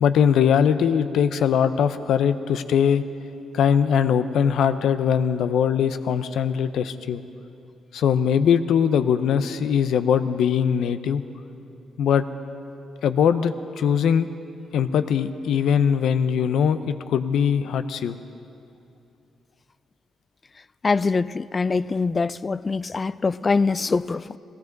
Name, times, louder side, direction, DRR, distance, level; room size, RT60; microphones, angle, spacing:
voice 1, 0.0-3.0 3.5-7.2 7.9-11.2 12.0-12.3 13.0-14.3 14.7-18.2, left 7 dB, 75° left, 0.6 m, -21 dB
voice 2, 20.8-24.4, left 4 dB, 35° left, 0.3 m, -23 dB
19.5 x 16.5 x 4.0 m
cardioid pair, 70°, 0 cm